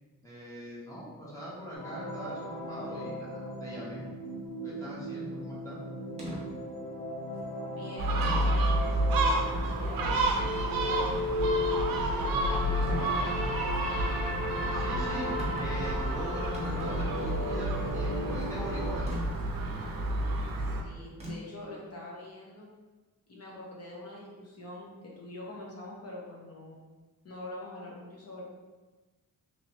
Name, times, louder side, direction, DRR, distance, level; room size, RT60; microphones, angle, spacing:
voice 1, 0.2-4.0 4.6-5.8 14.7-19.2, equal, 10° left, -9 dB, 0.8 m, -41 dB
sound 1, 1.7-18.9, left 1 dB, 70° left, 1.0 m, -36 dB
sound 2, 6.2-6.4 7.3-7.5 8.2-8.7 9.4-9.5 12.8-13.2 15.4-15.7 16.1-16.2 16.4-17.5 19.1-19.2 21.2-21.6, equal, 20° right, 1.0 m, -39 dB
voice 2, 7.6-13.3 20.6-22.7 23.3-26.8 27.2-28.4, left 1 dB, 45° left, -4 dB, 0.8 m, -45 dB
Gull seagull, 8.0-20.8, right 1 dB, 80° right, 0.5 m, -30 dB
3.0 x 2.9 x 2.8 m, 1.2 s
wide cardioid pair, 125°, 35 cm